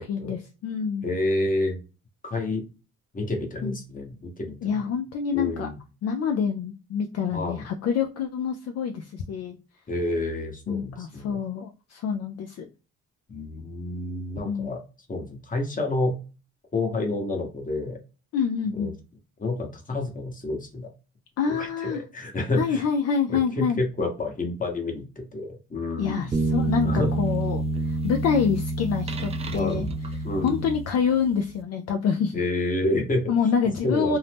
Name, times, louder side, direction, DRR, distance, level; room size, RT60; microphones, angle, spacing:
voice 1, 0.1-1.1 3.6-3.8 4.6-5.7 6.0-9.6 10.7-12.7 14.4-14.8 18.3-18.9 21.4-22.0 22.6-23.8 26.0-26.9 27.2-29.9 30.4-32.3 33.3-34.2, left 6 dB, 55° left, 4 dB, 0.4 m, -26 dB
voice 2, 1.0-1.8 2.2-2.6 3.1-4.8 5.3-5.8 7.3-7.6 9.9-11.4 13.3-14.8 15.1-16.2 16.7-18.0 18.8-18.9 19.4-20.9 21.5-22.8 23.3-26.3 26.8-27.1 29.5-29.8 30.2-30.6 32.3-33.2 33.8-34.2, left 2 dB, 25° left, 3 dB, 1.0 m, -29 dB
sound 1, 26.3-31.2, right 2 dB, 20° right, 0.3 m, -28 dB
2.6 x 2.0 x 3.3 m, 0.32 s
cardioid pair, 90°, 30 cm